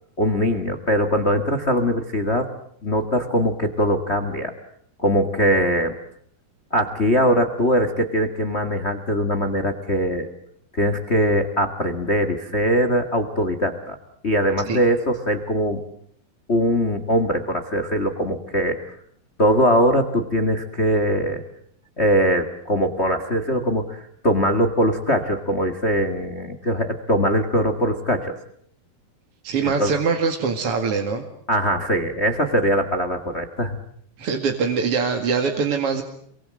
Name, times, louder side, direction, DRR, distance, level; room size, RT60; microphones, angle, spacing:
voice 1, 0.2-2.5 2.8-4.5 5.0-5.9 6.7-10.3 10.8-14.0 14.2-15.8 16.5-18.8 19.4-21.4 22.0-28.3 29.6-29.9 31.5-33.8, equal, 35° left, 8 dB, 1.0 m, -21 dB
voice 2, 29.4-31.2 34.2-36.0, right 5 dB, 45° right, 4 dB, 2.4 m, -23 dB
28.0 x 23.5 x 7.7 m, 0.67 s
omnidirectional pair, 4.7 m